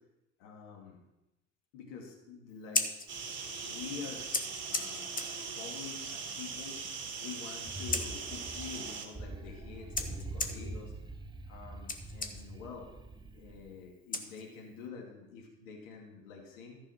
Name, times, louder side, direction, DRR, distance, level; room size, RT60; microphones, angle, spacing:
voice 1, 0.4-1.0 1.7-2.8 3.6-6.9 7.2-10.9 11.5-12.9 13.3-16.8, left 5 dB, 65° left, 0 dB, 2.4 m, -47 dB
Scissors, 2.5-14.9, left 3 dB, 20° left, 1.2 m, -41 dB
sound 1, 3.1-9.1, right 5 dB, 30° right, 2.6 m, -40 dB
sound 2, 7.5-13.8, right 2 dB, 10° right, 0.6 m, -44 dB
13.5 x 5.4 x 5.8 m, 0.93 s
hypercardioid pair, 75°, 41 cm